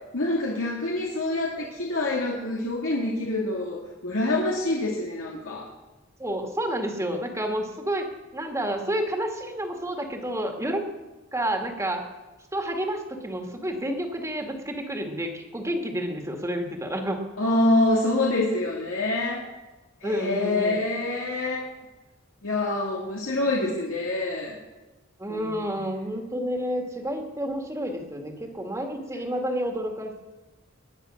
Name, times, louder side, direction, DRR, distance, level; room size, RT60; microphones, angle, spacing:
voice 1, 0.1-5.7 17.4-19.5 20.0-21.6 22.4-24.6 25.3-25.7, left 2 dB, 90° left, -3 dB, 2.4 m, -26 dB
voice 2, 6.2-8.1 8.3-10.8 11.3-12.1 12.5-17.2 20.0-20.8 23.6-23.8 25.2-30.2, equal, 15° right, 3 dB, 2.0 m, -30 dB
20.5 x 9.8 x 6.4 m, 1.2 s
head